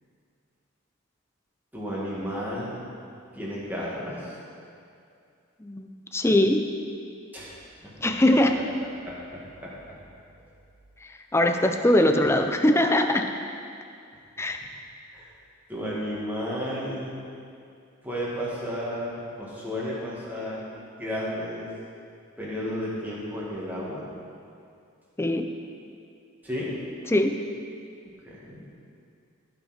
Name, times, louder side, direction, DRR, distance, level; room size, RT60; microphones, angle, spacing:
voice 1, 1.7-2.8 3.3-4.3 7.3-7.5 7.8-8.1 9.0-9.7 14.4-14.5 15.1-15.3 15.7-17.2 18.0-20.7 21.0-21.7 22.4-24.0 26.4-26.7 28.2-28.6, equal, 10° right, -7 dB, 2.1 m, -33 dB
voice 2, 5.6-6.6 8.0-8.6 11.3-13.3 14.4-14.6 25.2-25.5 27.1-27.4, left 1 dB, 10° left, 5 dB, 0.5 m, -21 dB
16.5 x 5.7 x 4.4 m, 2.5 s
head